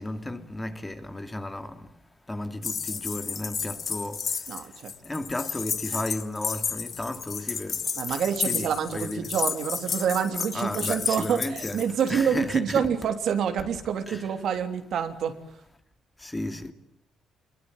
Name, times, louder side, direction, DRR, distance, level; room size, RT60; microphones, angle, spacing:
voice 1, 0.0-1.8 2.3-4.2 5.0-7.8 8.5-9.3 10.3-11.8 12.1-12.9 14.1-14.3 16.2-16.7, left 1 dB, 15° left, 2.7 m, -33 dB
sound 1, 2.6-12.1, left 6 dB, 50° left, 1.9 m, -32 dB
voice 2, 4.5-4.9 5.9-6.0 7.9-15.3, right 7 dB, 70° right, 3.2 m, -27 dB
27.5 x 22.0 x 9.1 m
cardioid pair, 90°, 0 cm